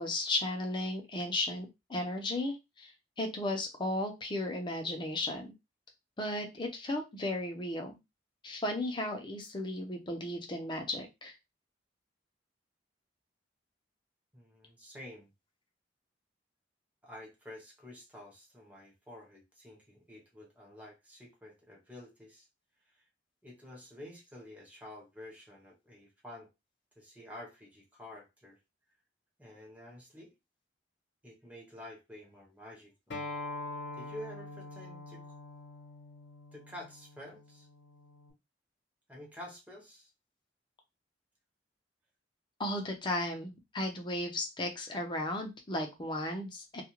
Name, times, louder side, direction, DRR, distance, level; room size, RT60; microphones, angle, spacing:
voice 1, 0.0-2.9 3.2-5.5 6.2-7.9 8.4-11.3 42.6-46.8, left 1 dB, 25° left, 3 dB, 0.6 m, -35 dB
voice 2, 14.3-15.3 17.0-22.5 22.9-23.0 23.4-26.5 27.0-28.6 29.4-30.3 31.2-33.2 34.0-35.2 36.5-37.7 39.1-40.1, left 1 dB, 10° right, -1 dB, 0.9 m, -49 dB
Acoustic guitar, 33.1-38.3, left 2 dB, 75° left, 0.9 m, -44 dB
2.4 x 2.3 x 2.9 m, 0.23 s
head